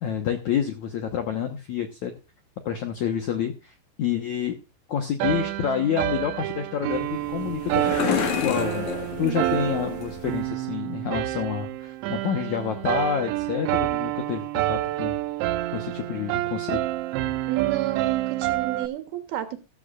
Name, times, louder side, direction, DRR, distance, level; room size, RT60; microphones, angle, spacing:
voice 1, 0.0-2.1 2.7-4.6 4.9-8.9 9.2-15.2 15.7-16.8, left 8 dB, 70° left, 5 dB, 1.8 m, -28 dB
sound 1, 5.2-18.9, right 16 dB, 90° right, 3.1 m, -28 dB
sound 2, 6.9-10.5, left 8 dB, 55° left, 2.6 m, -30 dB
voice 2, 9.2-9.7 17.5-19.6, right 12 dB, 70° right, 8 dB, 2.9 m, -31 dB
14.0 x 14.0 x 2.5 m, 0.29 s
omnidirectional pair, 5.1 m